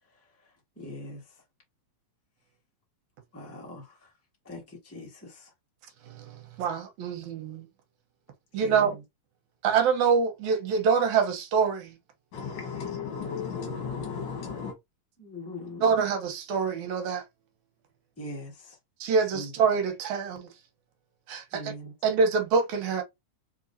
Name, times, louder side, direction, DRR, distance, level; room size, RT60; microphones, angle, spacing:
voice 1, 0.8-1.2 3.3-3.9 4.4-5.5 8.6-9.0 15.2-16.0 18.2-18.8 19.3-19.5 21.5-21.9, left 1 dB, 20° left, 0.4 m, -41 dB
voice 2, 6.1-7.7 8.5-9.0 9.6-12.0 15.8-17.2 19.0-20.5 21.3-21.7 22.0-23.0, right 6 dB, 80° right, 2.4 m, -25 dB
voice 3, 12.3-14.7, left 6 dB, 45° left, 1.8 m, -34 dB
4.6 x 3.8 x 2.7 m
omnidirectional pair, 3.4 m